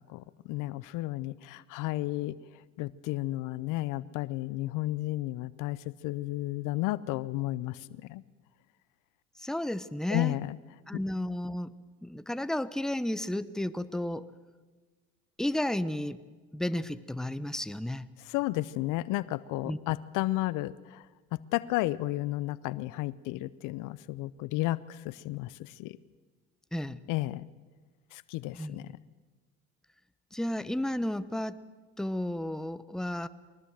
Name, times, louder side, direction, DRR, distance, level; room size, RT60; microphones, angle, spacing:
voice 1, 0.0-2.4 2.8-8.2 10.1-10.6 18.3-21.1 21.3-26.0 27.1-27.5 28.1-28.9, left 17 dB, 65° left, 19 dB, 0.8 m, -33 dB
voice 2, 9.4-10.4 10.9-11.7 12.0-14.3 15.4-16.2 16.5-18.1 19.6-19.8 26.7-27.0 28.5-28.9 30.3-31.6 32.0-33.3, left 1 dB, ahead, 14 dB, 1.0 m, -32 dB
23.5 x 19.0 x 7.8 m, 1.3 s
hypercardioid pair, 65°, 33 cm